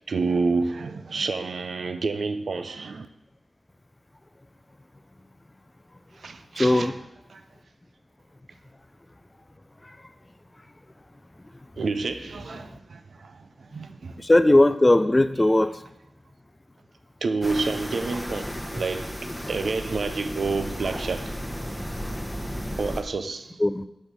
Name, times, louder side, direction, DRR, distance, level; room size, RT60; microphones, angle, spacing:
voice 1, 0.1-3.1 6.2-7.0 7.3-7.4 11.8-14.2 17.2-19.1 19.5-21.3 22.8-23.6, right 4 dB, 80° right, 0.4 m, -29 dB
voice 2, 6.6-6.9 14.2-15.7 23.6-23.8, left 1 dB, 20° left, 0.4 m, -18 dB
sound 1, 17.4-23.0, equal, 5° left, 1.0 m, -33 dB
5.1 x 4.1 x 5.9 m
wide cardioid pair, 60°, 0 cm